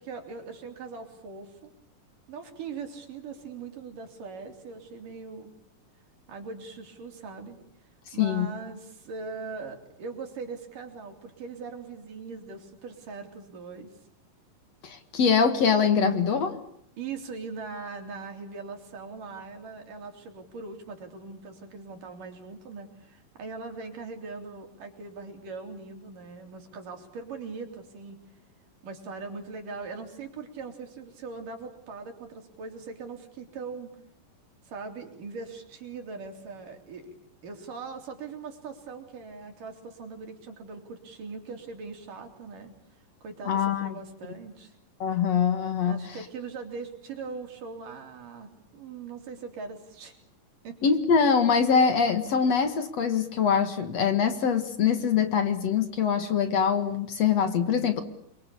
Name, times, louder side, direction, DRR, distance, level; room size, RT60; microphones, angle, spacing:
voice 1, 0.0-1.7 2.3-5.5 6.3-7.6 8.1-13.9 17.0-28.2 28.8-33.9 34.7-37.2 37.4-42.7 43.2-44.8 45.9-50.1 50.6-50.8, right 4 dB, 70° right, 4 dB, 5.1 m, -40 dB
voice 2, 8.2-8.5 14.8-16.6 43.5-43.9 45.0-46.0 50.8-58.0, left 6 dB, 55° left, 9 dB, 2.7 m, -23 dB
29.5 x 23.0 x 8.5 m, 0.70 s
omnidirectional pair, 3.9 m